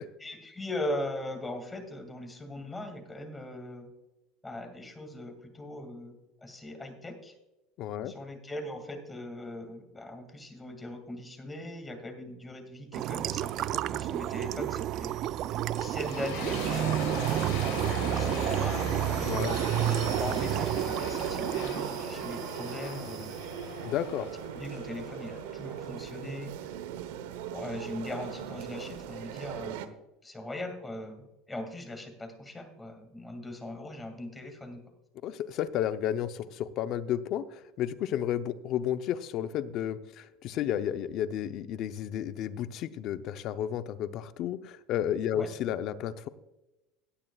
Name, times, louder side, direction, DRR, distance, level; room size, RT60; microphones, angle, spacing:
voice 1, 0.2-3.9 4.4-7.3 8.1-15.1 15.6-17.2 17.5-23.4 24.5-26.5 27.5-30.0 30.2-34.8 45.3-45.5, left 1 dB, 10° left, 5 dB, 2.3 m, -40 dB
voice 2, 7.8-8.1 19.2-19.5 23.8-24.3 35.2-46.3, left 10 dB, 55° left, 11 dB, 0.7 m, -32 dB
sound 1, 12.9-23.4, right 13 dB, 50° right, 0.3 m, -31 dB
sound 2, 15.7-26.6, left 6 dB, 80° left, 3.0 m, -40 dB
sound 3, 17.3-29.9, right 10 dB, 85° right, 1.0 m, -39 dB
17.0 x 9.9 x 2.4 m, 1.0 s
supercardioid pair, 125°, 0 cm